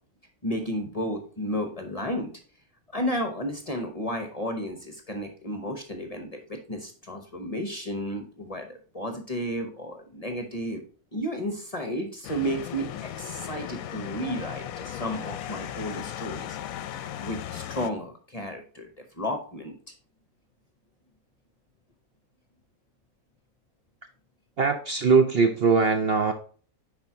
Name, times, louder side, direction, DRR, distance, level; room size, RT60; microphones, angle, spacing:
voice 1, 0.4-2.3 2.9-10.8 11.1-16.6 17.2-18.9 19.2-19.8, equal, 30° left, 5 dB, 0.8 m, -32 dB
sound 1, 12.2-17.9, left 11 dB, 75° left, 1.0 m, -36 dB
voice 2, 24.6-26.3, right 5 dB, 55° right, 6 dB, 0.8 m, -21 dB
10.5 x 4.3 x 2.7 m, 0.42 s
omnidirectional pair, 1.5 m